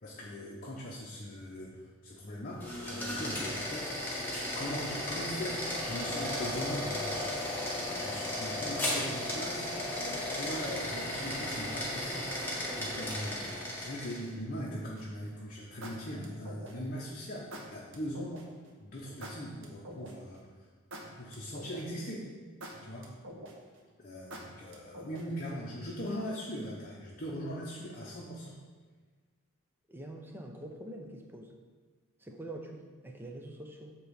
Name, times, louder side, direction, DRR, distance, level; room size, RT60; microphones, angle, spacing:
voice 1, 0.0-3.9 4.5-9.6 10.0-12.3 12.8-13.4 13.8-18.4 18.8-20.4 21.2-22.3 22.8-23.1 24.0-28.5, equal, 40° left, -4 dB, 0.9 m, -40 dB
sound 1, 2.5-14.3, left 1 dB, 10° left, 1.4 m, -35 dB
sound 2, 15.0-15.3 15.8-17.0 17.5-18.4 19.2-20.4 20.9-22.1 22.6-23.8 24.3-25.5, right 1 dB, 60° right, 1.0 m, -46 dB
voice 2, 29.9-31.5 32.2-33.9, right 1 dB, 10° right, 2 dB, 0.6 m, -45 dB
8.5 x 3.0 x 6.4 m, 1.4 s
head